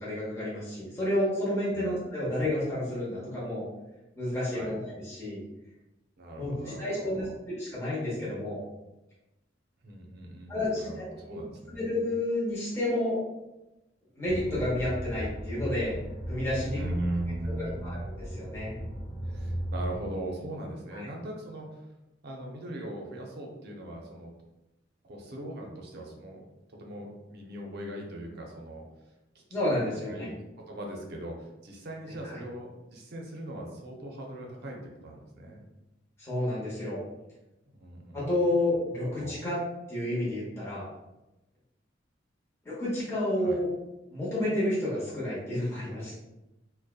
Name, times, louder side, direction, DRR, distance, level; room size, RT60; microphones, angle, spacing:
voice 1, 0.0-3.6 4.2-5.4 6.4-7.2 7.6-8.6 10.5-11.0 11.3-11.4 11.7-13.2 14.2-16.0 16.3-16.8 17.5-18.7 20.9-21.1 29.5-30.3 32.2-32.4 36.2-37.0 38.1-39.6 39.9-40.9 42.6-43.7 44.1-46.2, left 1 dB, 15° left, -9 dB, 0.8 m, -30 dB
voice 2, 4.3-4.7 6.2-7.3 9.8-12.0 16.7-18.0 19.2-21.8 22.2-24.3 25.0-26.4 26.8-28.8 29.3-29.8 30.0-30.3 30.7-35.6 37.7-38.3 39.2-39.4 43.4-43.6, right 1 dB, 55° right, 0 dB, 0.5 m, -40 dB
sound 1, 14.2-20.0, equal, 55° left, 0.6 m, -36 dB
2.6 x 2.1 x 2.3 m, 0.97 s
head